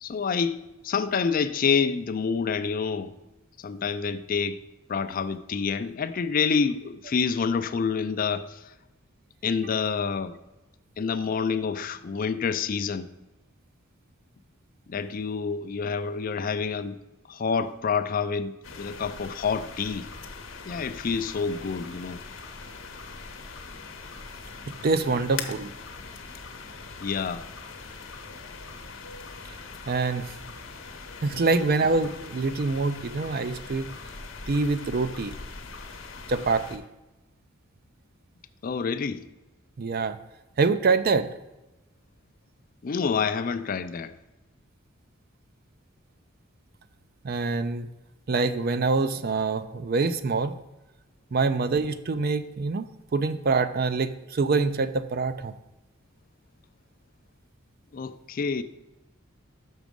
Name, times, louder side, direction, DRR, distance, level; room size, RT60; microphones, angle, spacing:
voice 1, 0.0-0.6 0.8-3.1 3.6-4.6 4.9-8.6 9.4-10.4 11.0-13.1 14.9-16.9 17.3-20.1 20.7-22.2 27.0-27.4 38.6-39.2 42.8-44.1 57.9-58.6, left 5 dB, 45° left, 0.4 m, -27 dB
sound 1, 18.6-36.8, left 4 dB, 75° left, 0.9 m, -41 dB
voice 2, 24.8-25.7 29.9-30.3 31.2-33.9 34.5-35.3 36.3-36.8 39.8-40.2 40.6-41.3 47.2-47.9 48.3-50.6 51.3-55.5, right 4 dB, 50° right, 0.5 m, -25 dB
6.2 x 6.1 x 5.2 m
head